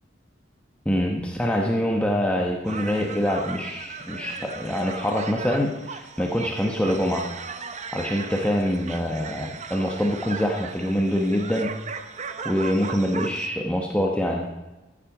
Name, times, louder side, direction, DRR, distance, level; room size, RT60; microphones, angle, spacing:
voice 1, 0.8-7.3 7.9-11.8 12.4-14.5, equal, 5° left, 0 dB, 1.0 m, -25 dB
sound 1, 2.7-13.5, right 5 dB, 40° right, 0.7 m, -37 dB
14.5 x 8.8 x 4.9 m, 1.1 s
head